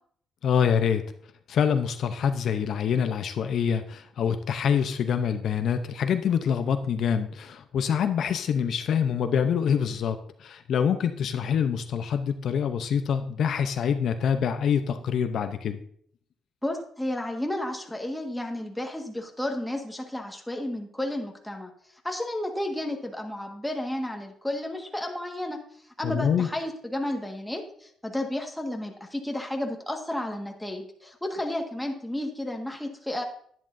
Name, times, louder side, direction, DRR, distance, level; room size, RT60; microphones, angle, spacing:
voice 1, 0.4-1.0 1.5-15.8 26.0-26.5, left 7 dB, 65° left, 8 dB, 0.7 m, -25 dB
voice 2, 16.6-21.7 22.0-25.6 26.0-33.2, left 1 dB, 5° left, 2 dB, 1.7 m, -32 dB
10.5 x 10.5 x 2.7 m, 0.62 s
cardioid pair, 90°, 0 cm